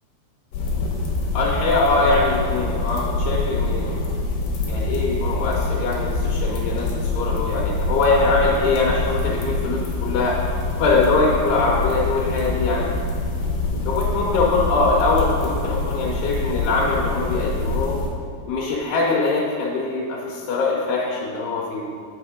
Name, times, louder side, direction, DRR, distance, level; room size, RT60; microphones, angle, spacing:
sound 1, 0.5-18.1, left 2 dB, 70° left, 2.5 m, -25 dB
voice 1, 1.3-4.0 4.6-10.4 10.8-12.9 13.9-18.0 18.5-21.9, left 3 dB, 85° left, -4 dB, 2.9 m, -22 dB
7.6 x 5.8 x 3.7 m, 2.2 s
omnidirectional pair, 4.5 m